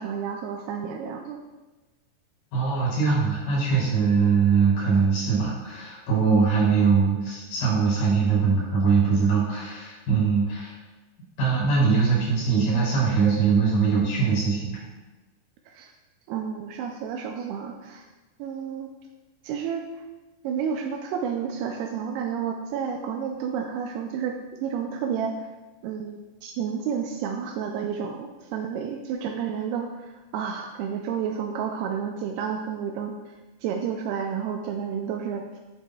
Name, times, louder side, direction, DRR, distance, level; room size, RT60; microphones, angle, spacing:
voice 1, 0.0-1.4 15.7-15.9 16.3-18.1 18.4-18.9 19.4-20.0 20.4-25.5 25.8-33.4 33.6-35.6, right 7 dB, 85° right, 3 dB, 2.2 m, -31 dB
voice 2, 2.5-10.7 11.4-14.8, right 5 dB, 55° left, -7 dB, 4.5 m, -22 dB
9.7 x 8.2 x 2.3 m, 1.2 s
omnidirectional pair, 5.0 m